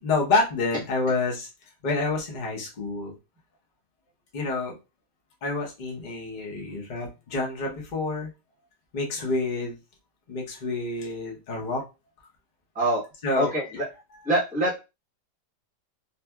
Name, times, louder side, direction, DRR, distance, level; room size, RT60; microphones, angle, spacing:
voice 1, 0.0-1.5 1.8-3.1 4.3-4.7 5.4-8.3 8.9-9.8 10.3-11.8 13.2-13.5, left 3 dB, 40° left, -2 dB, 0.7 m, -28 dB
voice 2, 13.3-13.8 14.2-14.8, right 1 dB, 5° right, -4 dB, 0.9 m, -24 dB
2.9 x 2.6 x 2.2 m, 0.27 s
omnidirectional pair, 1.8 m